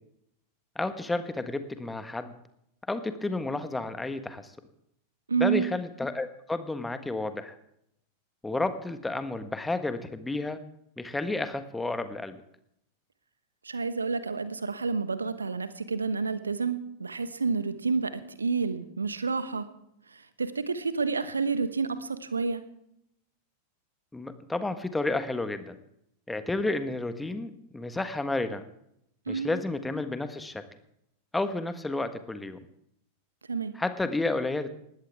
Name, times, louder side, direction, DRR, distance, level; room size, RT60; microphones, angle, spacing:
voice 1, 0.7-2.3 2.9-4.5 5.4-7.5 8.4-10.6 11.0-12.4 24.1-25.7 26.3-28.6 29.3-30.6 31.3-32.6 33.7-34.7, left 2 dB, 10° left, 10 dB, 1.4 m, -31 dB
voice 2, 5.3-5.7 13.6-19.7 20.1-22.6 29.3-29.6 33.5-33.7, right 5 dB, 75° right, 12 dB, 1.2 m, -29 dB
20.5 x 16.0 x 3.6 m, 0.76 s
figure-of-eight pair, 90°, 0 cm